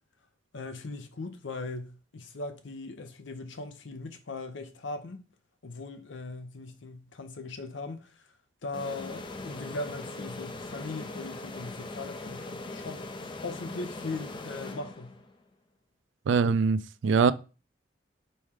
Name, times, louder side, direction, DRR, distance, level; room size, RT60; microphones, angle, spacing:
voice 1, 0.5-5.2 5.6-8.2 8.6-13.1 13.4-15.2, left 3 dB, 75° left, 0.6 m, -39 dB
sound 1, 8.7-15.4, left 2 dB, 25° left, 0.4 m, -40 dB
voice 2, 16.3-17.3, right 5 dB, 75° right, 0.3 m, -23 dB
4.3 x 3.1 x 3.6 m
head